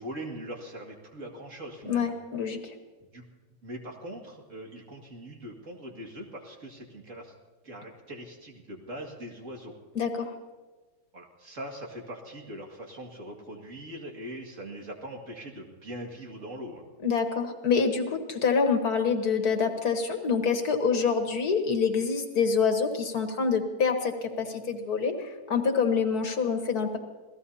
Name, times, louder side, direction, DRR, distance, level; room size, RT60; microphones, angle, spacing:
voice 1, 0.0-2.1 3.1-3.2 3.6-7.3 7.6-9.7 11.1-16.8, right 1 dB, 45° right, 1 dB, 2.5 m, -41 dB
voice 2, 1.9-2.7 10.0-10.3 17.0-27.0, left 5 dB, 65° left, 5 dB, 1.9 m, -26 dB
27.5 x 17.5 x 2.8 m, 1.3 s
omnidirectional pair, 1.8 m